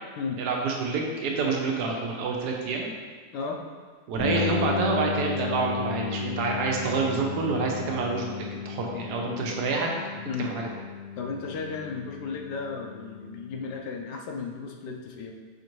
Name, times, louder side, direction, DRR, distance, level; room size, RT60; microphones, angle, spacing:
voice 1, 0.4-2.9 4.1-9.9 10.4-10.7, right 4 dB, 80° right, 0 dB, 1.2 m, -28 dB
sound 1, 4.2-13.9, left 5 dB, 50° right, 0.8 m, -34 dB
voice 2, 8.9-9.4 10.3-10.5 11.2-15.3, left 5 dB, 90° left, 2 dB, 1.2 m, -35 dB
4.9 x 2.6 x 3.0 m, 1.5 s
omnidirectional pair, 1.7 m